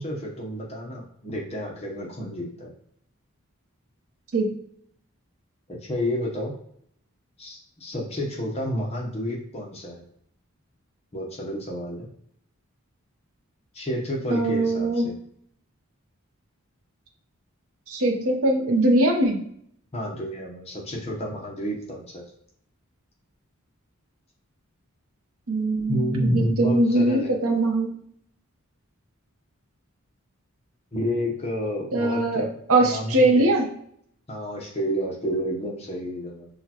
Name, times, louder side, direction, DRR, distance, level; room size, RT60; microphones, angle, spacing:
voice 1, 0.0-2.7 5.7-6.5 7.4-10.0 11.1-12.1 13.7-15.1 19.9-22.2 25.9-27.3 30.9-32.5 32.8-33.5 34.3-36.5, equal, 30° left, -2 dB, 0.8 m, -30 dB
voice 2, 14.3-15.1 17.9-19.4 25.5-27.9 31.9-33.7, right 2 dB, 75° right, 2 dB, 0.8 m, -21 dB
6.3 x 2.3 x 2.9 m, 0.68 s
head